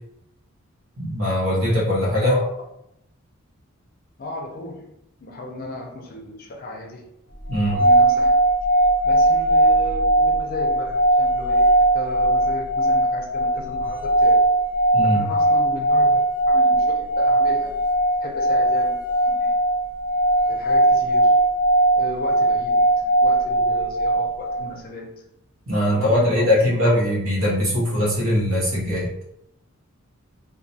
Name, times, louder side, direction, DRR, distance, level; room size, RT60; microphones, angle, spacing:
voice 1, 1.0-2.4 7.5-7.8 14.9-15.2 25.7-29.1, left 1 dB, 70° right, -5 dB, 1.0 m, -21 dB
voice 2, 2.2-2.5 4.2-4.9 5.2-7.1 7.6-8.4 9.0-14.5 15.0-16.2 16.5-17.8 18.2-19.0 19.3-19.5 20.5-21.4 22.0-25.2 25.9-26.9, left 2 dB, 40° left, 1 dB, 0.5 m, -35 dB
sound 1, 7.5-24.6, right 1 dB, 35° right, 0.5 m, -19 dB
2.3 x 2.3 x 2.7 m, 0.79 s
head